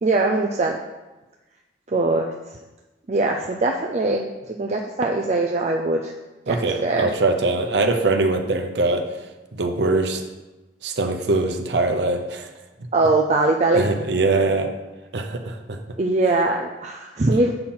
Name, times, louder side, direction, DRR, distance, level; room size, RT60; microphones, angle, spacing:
voice 1, 0.0-0.8 1.9-2.3 3.1-6.1 6.5-7.1 12.9-13.9 16.0-17.5, right 2 dB, 40° right, 1 dB, 0.4 m, -21 dB
voice 2, 6.5-9.0 9.5-10.2 10.8-12.5 13.7-14.7 15.1-15.8, right 2 dB, 70° right, 5 dB, 0.8 m, -22 dB
7.7 x 4.4 x 5.6 m, 1.1 s
head